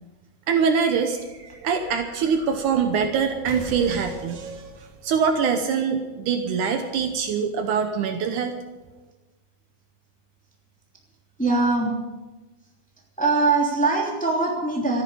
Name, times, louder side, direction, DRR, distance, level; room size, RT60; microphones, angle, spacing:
voice 1, 0.5-4.7 5.0-8.5, right 6 dB, 75° right, 7 dB, 2.4 m, -24 dB
sound 1, 0.7-6.4, right 1 dB, 45° right, 2.8 m, -44 dB
voice 2, 11.4-11.9 13.2-15.0, right 3 dB, 5° left, -1 dB, 2.4 m, -22 dB
14.0 x 11.0 x 8.4 m, 1.2 s
omnidirectional pair, 3.7 m